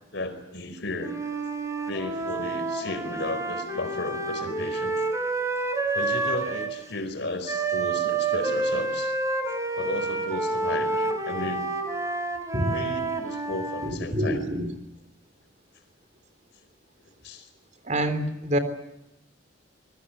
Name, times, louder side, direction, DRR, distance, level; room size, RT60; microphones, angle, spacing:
voice 1, 0.1-1.2 1.9-5.0 5.9-9.1 9.7-11.8 12.7-14.4 17.2-17.5, left 2 dB, 60° left, 9 dB, 4.6 m, -34 dB
Wind instrument woodwind instrument, 1.0-6.8 7.4-13.9, right 3 dB, 15° right, 4.1 m, -29 dB
voice 2, 13.8-14.7 17.8-18.6, right 1 dB, 35° right, 9 dB, 3.6 m, -26 dB
27.0 x 21.5 x 7.9 m, 0.87 s
head